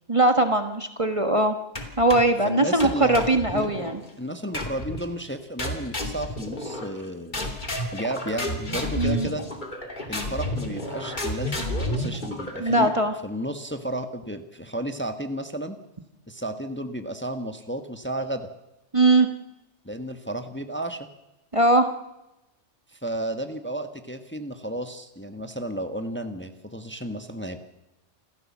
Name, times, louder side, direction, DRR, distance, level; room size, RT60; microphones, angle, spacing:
voice 1, 0.1-1.5 2.0-4.0 9.0-9.3 12.6-13.1 18.9-19.3 21.5-21.9, right 2 dB, 25° right, 7 dB, 1.4 m, -20 dB
sound 1, 1.8-2.4 2.8-4.0 4.5-5.1 5.6-7.0 7.3-13.0, left 1 dB, 40° left, 3.1 m, -31 dB
voice 2, 2.4-3.7 4.2-7.5 7.9-9.5 10.1-12.9 13.2-15.8 16.3-18.5 19.8-21.1 22.9-27.6, right 1 dB, 10° left, 7 dB, 1.3 m, -32 dB
28.0 x 15.0 x 7.3 m, 0.94 s
omnidirectional pair, 1.3 m